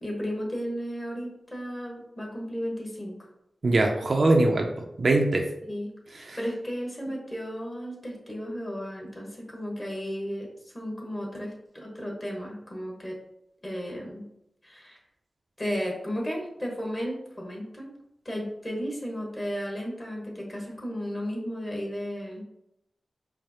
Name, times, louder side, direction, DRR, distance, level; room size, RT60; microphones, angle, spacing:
voice 1, 0.0-3.3 5.6-13.2 13.6-14.2 14.6-15.0 15.6-17.9 18.2-22.4, equal, 30° left, -2 dB, 1.4 m, -34 dB
voice 2, 3.6-4.7 5.0-5.4 6.3-6.4, right 2 dB, 65° right, 2 dB, 0.5 m, -21 dB
4.9 x 2.1 x 3.0 m, 0.81 s
cardioid pair, 45°, 0 cm